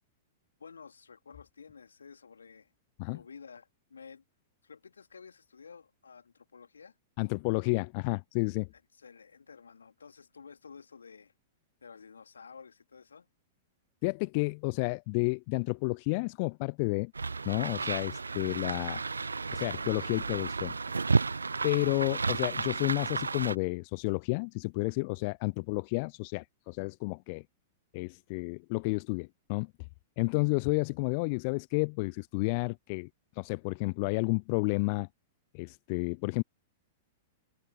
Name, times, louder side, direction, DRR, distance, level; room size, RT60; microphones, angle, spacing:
voice 1, 0.6-2.7 3.1-4.2 4.6-6.9 9.0-11.3 11.8-13.3, left 5 dB, 75° left, 3.0 m, -52 dB
voice 2, 7.2-8.7 14.0-17.1 17.4-19.0 19.5-20.8 21.6-27.4 27.9-29.7 30.2-33.1 33.4-35.1 35.5-36.4, left 30 dB, 45° left, 0.6 m, -31 dB
sound 1, 17.2-23.6, right 4 dB, 80° right, 0.5 m, -32 dB
open air
figure-of-eight pair, 100°, 0 cm